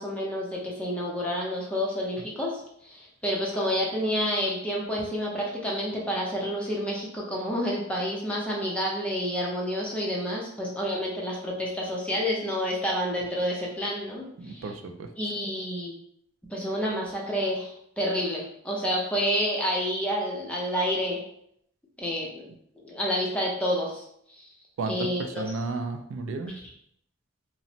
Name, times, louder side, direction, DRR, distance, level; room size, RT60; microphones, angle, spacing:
voice 1, 0.0-14.7 15.2-15.9 16.5-21.2 22.0-22.5 22.8-24.0 24.3-24.5 24.9-25.6 26.5-26.7, equal, 5° left, -3 dB, 0.5 m, -29 dB
voice 2, 14.4-15.1 24.8-24.9 25.4-26.5, right 3 dB, 90° right, 6 dB, 0.3 m, -33 dB
3.0 x 2.0 x 2.7 m, 0.71 s
head